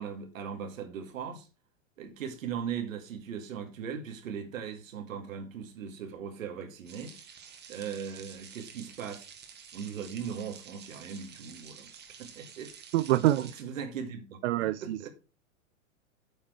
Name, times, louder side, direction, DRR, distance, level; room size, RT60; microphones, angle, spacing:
voice 1, 0.0-1.5 2.0-7.2 7.7-9.3 9.7-11.9 12.2-12.7 13.2-14.4 14.8-15.1, right 7 dB, 70° right, 2.3 m, -39 dB
sound 1, 6.9-13.6, right 7 dB, 25° right, 1.8 m, -50 dB
voice 2, 12.9-13.5 14.4-15.1, right 15 dB, 55° right, 0.5 m, -26 dB
8.9 x 5.9 x 4.5 m
hypercardioid pair, 110°, 41 cm